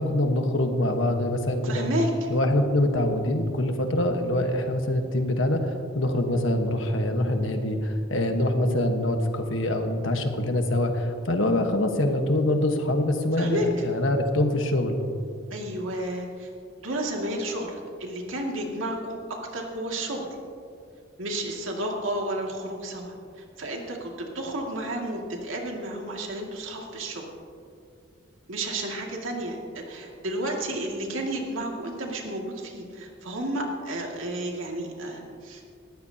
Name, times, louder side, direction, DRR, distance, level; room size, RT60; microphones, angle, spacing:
voice 1, 0.0-1.9 2.3-15.0, left 1 dB, 75° left, 5 dB, 1.4 m, -24 dB
voice 2, 1.6-2.3 13.4-13.8 15.5-16.5 16.8-20.3 21.2-27.2 28.5-35.6, right 1 dB, 85° right, 0 dB, 2.3 m, -32 dB
19.5 x 14.5 x 2.9 m, 2.3 s
head